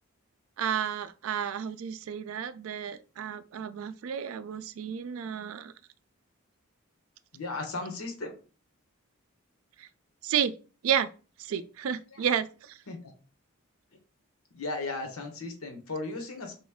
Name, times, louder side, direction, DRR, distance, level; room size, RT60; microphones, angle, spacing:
voice 1, 0.6-5.7 9.8-9.9 10.2-10.5 10.8-11.1 11.4-12.8, right 8 dB, 70° right, 0.3 m, -31 dB
voice 2, 7.3-8.3 12.1-12.2 12.9-13.1 14.5-16.5, left 3 dB, 85° left, 1.0 m, -36 dB
3.2 x 3.0 x 3.5 m
head